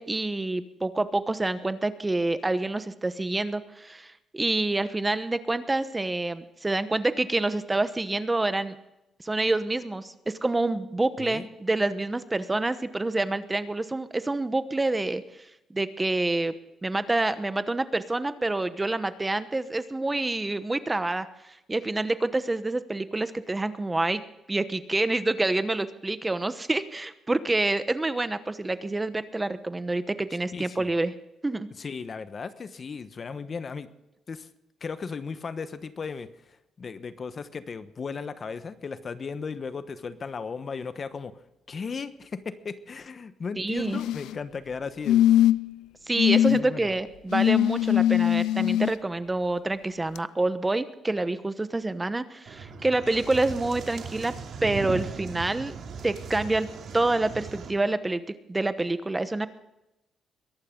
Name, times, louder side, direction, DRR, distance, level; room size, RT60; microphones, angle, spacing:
voice 1, 0.0-8.8 9.2-16.5 16.8-21.3 21.7-24.2 24.5-31.1 31.4-31.7 43.6-44.0 46.1-54.3 54.6-55.7 56.0-56.7 56.9-59.5, right 2 dB, 15° right, 12 dB, 1.0 m, -27 dB
voice 2, 30.5-30.9 31.8-33.9 34.3-34.5 34.8-45.3 46.4-46.9, left 5 dB, 40° left, 12 dB, 1.1 m, -36 dB
sound 1, 43.8-44.4 45.1-45.7 46.2-46.6 47.3-48.9 50.2-50.3, left 12 dB, 85° left, 0.4 m, -21 dB
sound 2, 52.5-57.7, right 5 dB, 60° right, 2.8 m, -38 dB
22.5 x 11.5 x 3.8 m, 0.90 s
cardioid pair, 90°, 0 cm